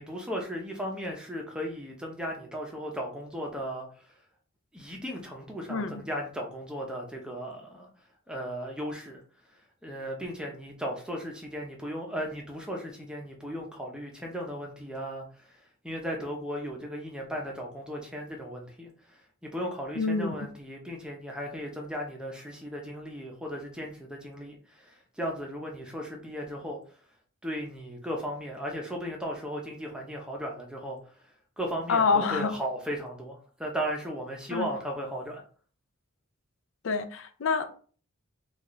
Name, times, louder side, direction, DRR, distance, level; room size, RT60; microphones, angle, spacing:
voice 1, 0.0-3.9 4.7-7.9 8.3-9.2 9.8-26.8 27.4-31.0 31.6-35.4, equal, 5° right, 0.7 m, -36 dB
voice 2, 5.7-6.0 20.0-20.5 31.9-32.5 34.5-34.7 36.8-37.7, left 4 dB, 65° left, 0.5 m, -27 dB
4.1 x 2.5 x 3.1 m
head